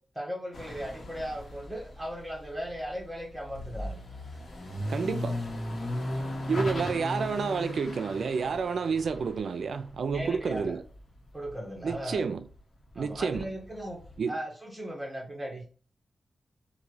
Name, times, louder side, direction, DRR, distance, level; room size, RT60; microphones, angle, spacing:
voice 1, 0.2-4.0 9.2-9.3 10.1-10.7 11.3-12.3 12.9-15.7, equal, 5° right, 1.7 m, -37 dB
sound 1, 0.5-11.5 11.8-14.2, left 1 dB, 65° left, 1.3 m, -37 dB
voice 2, 4.9-5.4 6.5-10.8 11.8-12.4 13.0-13.5 14.2-14.4, right 5 dB, 90° right, 0.4 m, -30 dB
4.1 x 2.6 x 4.7 m
wide cardioid pair, 125°, 0 cm